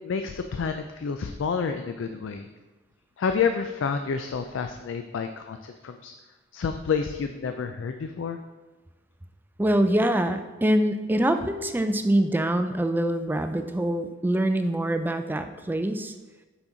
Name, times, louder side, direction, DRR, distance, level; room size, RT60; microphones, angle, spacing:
voice 1, 0.0-2.5 3.2-6.1 6.5-8.4, left 6 dB, 85° left, 7 dB, 0.4 m, -29 dB
voice 2, 9.6-16.1, right 1 dB, 10° right, 7 dB, 0.3 m, -24 dB
6.0 x 5.9 x 3.9 m, 1.2 s
head